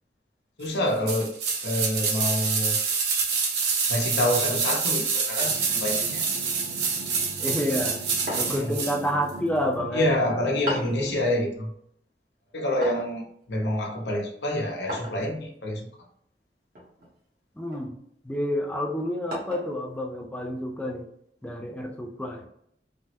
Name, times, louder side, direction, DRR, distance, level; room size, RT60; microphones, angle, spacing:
voice 1, 0.6-2.8 3.9-6.3 8.4-8.7 9.9-11.7 12.5-16.1, left 1 dB, 80° left, 1 dB, 0.7 m, -27 dB
sound 1, 1.1-9.0 9.3-9.4, right 5 dB, 75° right, 0.6 m, -27 dB
sound 2, 5.4-11.2, right 2 dB, 25° right, 0.7 m, -41 dB
voice 2, 7.4-8.0 8.4-10.1 17.6-17.9 18.2-21.1 21.4-22.5, equal, 10° left, 2 dB, 0.4 m, -29 dB
sound 3, 8.3-8.8 10.7-11.1 12.8-13.2 14.9-15.3 16.8-17.1 17.7-17.9 19.3-19.8, equal, 55° right, 1.0 m, -34 dB
3.3 x 2.1 x 2.8 m, 0.68 s
head